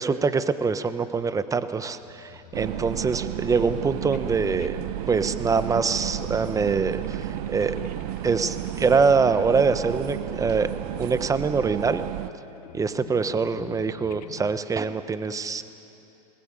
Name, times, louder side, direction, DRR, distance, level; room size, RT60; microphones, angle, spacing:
voice 1, 0.0-4.8 5.1-7.8 8.2-10.7 11.0-12.0 12.7-15.6, right 5 dB, 15° right, 12 dB, 1.0 m, -24 dB
sound 1, 1.2-14.5, left 9 dB, 75° left, 1.0 m, -45 dB
sound 2, 2.5-12.3, right 17 dB, 70° right, 0.6 m, -32 dB
20.5 x 19.5 x 9.0 m, 2.9 s
hypercardioid pair, 105°, 20 cm